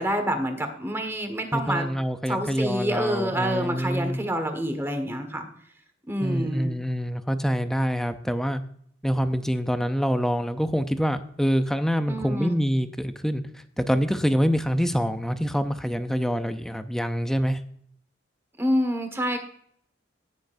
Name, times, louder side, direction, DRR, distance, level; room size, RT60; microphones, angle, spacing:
voice 1, 0.0-1.8 2.3-5.5 6.1-6.7 12.1-12.5 18.6-19.4, equal, 15° right, 6 dB, 1.5 m, -27 dB
voice 2, 1.5-4.2 6.2-8.6 9.0-13.4 13.8-17.6, equal, ahead, 9 dB, 0.5 m, -25 dB
18.0 x 6.5 x 2.6 m, 0.65 s
head